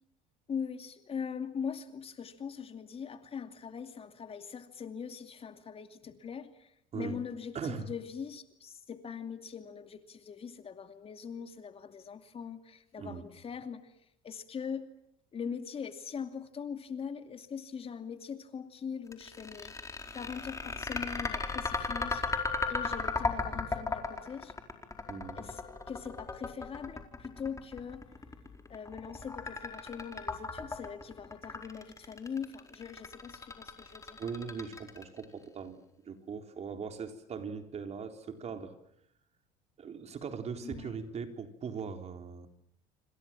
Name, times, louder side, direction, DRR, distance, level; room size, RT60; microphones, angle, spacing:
voice 1, 0.5-13.9 14.2-14.8 15.3-22.2 22.7-24.5 25.4-25.6 25.9-28.0 28.7-34.2 40.6-41.0, left 6 dB, 35° left, 8 dB, 2.6 m, -41 dB
voice 2, 7.5-7.9 13.0-13.2 25.1-25.5 34.2-38.7 39.8-42.5, right 6 dB, 40° right, 6 dB, 3.9 m, -40 dB
sound 1, 19.1-35.2, left 3 dB, 20° left, 4.6 m, -36 dB
27.5 x 25.5 x 7.6 m, 0.75 s
supercardioid pair, 100°, 17 cm